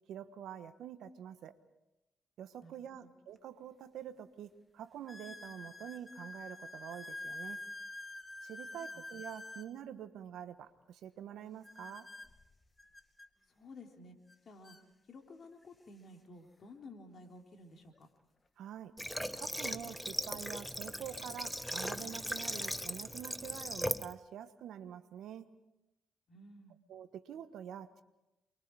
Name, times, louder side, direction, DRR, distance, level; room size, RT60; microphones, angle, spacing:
voice 1, 0.1-1.5 2.4-7.6 8.4-12.1 18.6-18.9 19.4-25.5 26.9-28.0, right 9 dB, 75° right, 10 dB, 1.3 m, -46 dB
sound 1, 3.4-3.5 4.1-4.2 5.1-9.7 11.6-13.3 14.3-14.4 14.6-14.8 15.6-15.7 17.9-18.0 20.1-20.2 20.9-21.3 21.8-22.7, left 2 dB, 25° left, 2.2 m, -48 dB
voice 2, 13.5-14.2 14.5-14.8 15.1-18.1 26.3-26.8, left 2 dB, 55° left, 3 dB, 3.7 m, -53 dB
Water / Water tap faucet, 19.0-24.1, equal, 5° left, 1.3 m, -38 dB
28.5 x 22.5 x 4.8 m, 0.93 s
hypercardioid pair, 45°, 0 cm